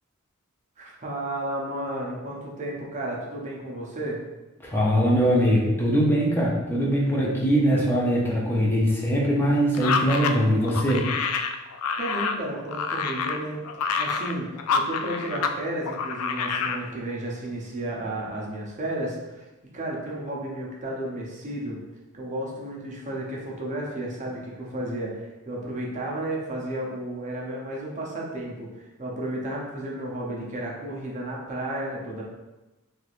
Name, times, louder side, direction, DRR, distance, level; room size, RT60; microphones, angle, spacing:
voice 1, 0.8-4.2 12.0-13.6 14.0-19.5 19.7-21.8 22.1-32.2, right 1 dB, 35° right, -3 dB, 0.6 m, -33 dB
voice 2, 4.6-11.0, equal, 10° left, -4 dB, 0.5 m, -22 dB
sound 1, 9.7-15.6 15.8-16.8, left 5 dB, 90° left, 0.3 m, -27 dB
3.2 x 3.2 x 2.5 m, 1.1 s
head